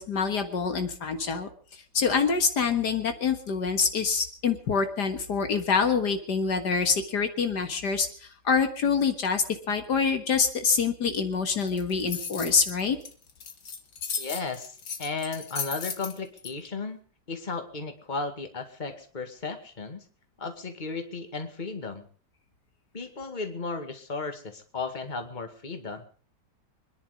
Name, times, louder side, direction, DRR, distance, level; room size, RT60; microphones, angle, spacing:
voice 1, 0.0-1.5 1.9-8.1 8.4-13.0, left 5 dB, 70° left, 7 dB, 2.1 m, -26 dB
sound 1, 11.7-16.5, left 6 dB, 85° left, 2.5 m, -35 dB
voice 2, 14.2-17.0 17.3-20.0 20.4-22.1 22.9-26.1, left 4 dB, 25° left, 6 dB, 2.1 m, -35 dB
26.0 x 10.5 x 5.0 m, 0.43 s
omnidirectional pair, 1.8 m